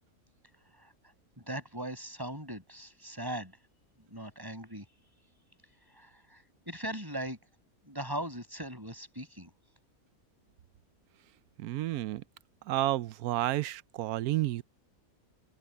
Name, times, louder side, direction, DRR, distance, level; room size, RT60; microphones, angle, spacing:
voice 1, 1.4-3.6 4.1-4.8 6.0-7.4 7.8-9.5, right 1 dB, 15° right, 6.7 m, -39 dB
voice 2, 11.6-12.2 12.7-14.6, right 15 dB, 80° right, 1.1 m, -31 dB
omnidirectional pair, 1.6 m